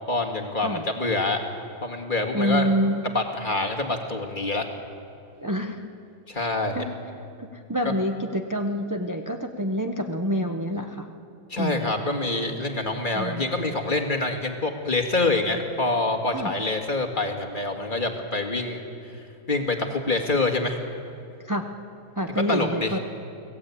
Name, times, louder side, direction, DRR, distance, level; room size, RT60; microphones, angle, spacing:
voice 1, 0.1-1.4 1.8-2.7 3.0-4.7 6.3-6.9 7.8-7.9 11.5-18.8 19.1-19.2 19.5-20.8 22.5-22.9, left 2 dB, 30° left, 3 dB, 2.1 m, -26 dB
voice 2, 2.3-3.1 5.4-5.8 6.3-6.9 7.4-11.1 11.6-11.9 13.1-13.5 16.3-16.5 21.4-21.7 22.2-23.0, equal, 15° right, 4 dB, 0.7 m, -27 dB
25.5 x 18.0 x 8.5 m, 2.5 s
omnidirectional pair, 1.9 m